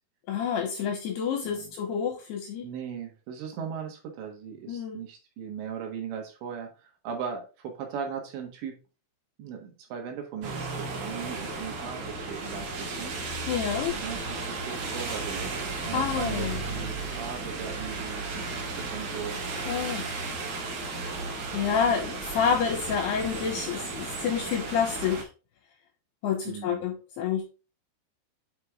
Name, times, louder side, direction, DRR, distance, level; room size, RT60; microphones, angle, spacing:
voice 1, 0.3-2.7 4.7-5.0 13.5-13.9 15.9-16.6 19.7-20.1 21.1-21.2 21.5-25.3 26.2-27.6, left 7 dB, 80° left, 4 dB, 2.5 m, -28 dB
voice 2, 2.6-8.8 9.4-13.2 13.9-19.4 21.4-21.6 21.9-22.0 22.4-22.6 26.5-26.9, right 7 dB, 70° right, 2 dB, 3.5 m, -38 dB
sound 1, 10.4-25.2, right 3 dB, 50° right, 3.5 m, -34 dB
8.6 x 4.8 x 3.6 m, 0.32 s
omnidirectional pair, 5.6 m